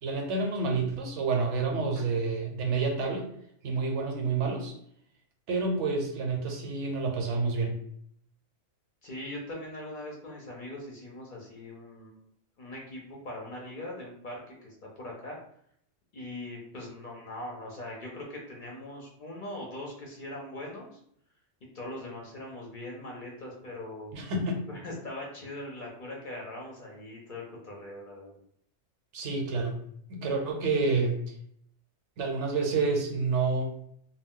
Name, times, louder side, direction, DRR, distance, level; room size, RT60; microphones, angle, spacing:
voice 1, 0.0-3.3 3.6-4.7 5.5-7.8 24.1-24.7 29.1-29.7 30.1-31.3 32.2-33.7, right 4 dB, 75° right, 2 dB, 1.0 m, -29 dB
voice 2, 9.0-12.2 12.6-15.4 16.1-21.0 21.6-24.1 24.7-28.4, left 1 dB, 50° left, -2 dB, 0.7 m, -41 dB
2.3 x 2.2 x 3.5 m, 0.69 s
omnidirectional pair, 1.3 m